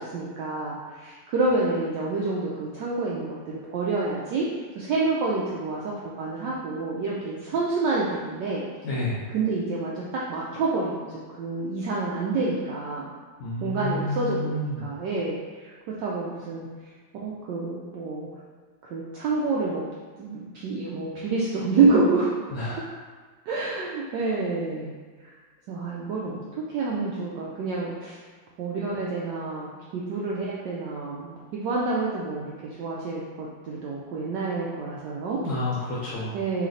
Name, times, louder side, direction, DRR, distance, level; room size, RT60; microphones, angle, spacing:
voice 1, 0.0-4.5 4.7-8.6 9.3-13.1 13.6-15.4 16.0-16.7 17.2-18.3 18.8-19.8 20.2-22.3 23.5-24.9 25.7-28.2 28.6-32.5 32.8-35.4 36.3-36.7, right 3 dB, 75° right, -5 dB, 1.0 m, -28 dB
voice 2, 8.8-9.2 13.4-14.8 22.5-22.8 35.4-36.3, left 2 dB, 70° left, -6 dB, 1.4 m, -30 dB
3.3 x 3.2 x 3.7 m, 1.5 s
omnidirectional pair, 2.4 m